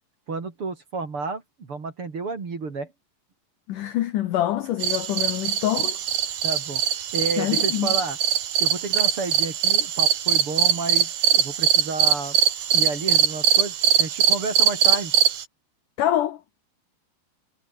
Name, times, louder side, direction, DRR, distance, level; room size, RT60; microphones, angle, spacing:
voice 1, 0.3-2.9 6.4-8.2 8.6-12.4 12.7-15.2, right 4 dB, 35° right, 3.3 m, -31 dB
voice 2, 3.7-6.0 7.4-7.9 16.0-16.4, left 12 dB, 80° left, 1.8 m, -25 dB
sound 1, 4.8-15.4, right 9 dB, 55° right, 3.5 m, -22 dB
omnidirectional pair, 5.2 m